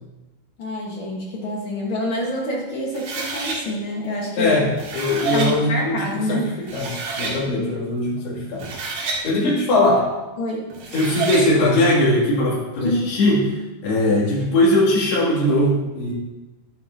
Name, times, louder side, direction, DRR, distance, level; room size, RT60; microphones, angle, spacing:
voice 1, 0.6-4.6 5.3-6.5 10.4-10.7 12.8-13.0, left 1 dB, 55° left, -3 dB, 1.4 m, -26 dB
sound 1, 2.9-3.6 4.6-5.5 6.3-6.4 6.7-7.4 8.4-9.2 10.7-11.5, right 4 dB, 75° right, 3.7 m, -28 dB
voice 2, 4.4-8.7 9.2-10.1 10.9-16.1, left 1 dB, 80° left, -6 dB, 4.7 m, -20 dB
12.0 x 10.0 x 2.8 m, 1.1 s
omnidirectional pair, 4.6 m